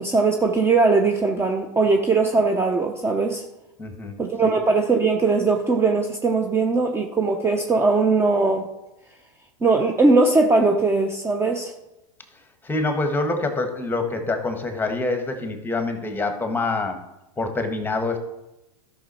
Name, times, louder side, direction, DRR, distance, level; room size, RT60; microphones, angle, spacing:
voice 1, 0.0-3.4 4.2-8.7 9.6-11.7, right 3 dB, 15° right, 4 dB, 0.8 m, -20 dB
voice 2, 3.8-4.2 4.4-4.6 12.6-17.0 17.4-18.2, left 2 dB, 10° left, 6 dB, 1.4 m, -26 dB
12.0 x 6.1 x 4.3 m, 0.95 s
hypercardioid pair, 105°, 18 cm